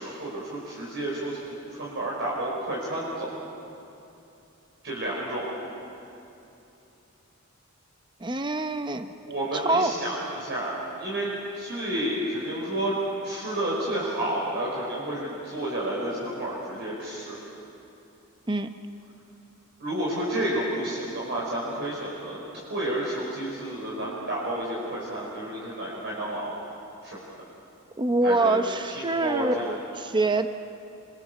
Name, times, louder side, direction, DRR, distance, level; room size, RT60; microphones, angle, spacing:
voice 1, 0.0-3.3 4.8-5.5 9.3-13.0 13.2-17.4 19.8-22.4 22.7-26.5 27.0-27.2 28.2-28.6 28.8-29.7, right 1 dB, 55° right, -6 dB, 5.2 m, -30 dB
voice 2, 8.2-9.1 9.5-9.9 18.5-18.7 28.0-30.5, right 2 dB, 20° right, 9 dB, 0.7 m, -25 dB
28.5 x 25.0 x 6.9 m, 2.9 s
head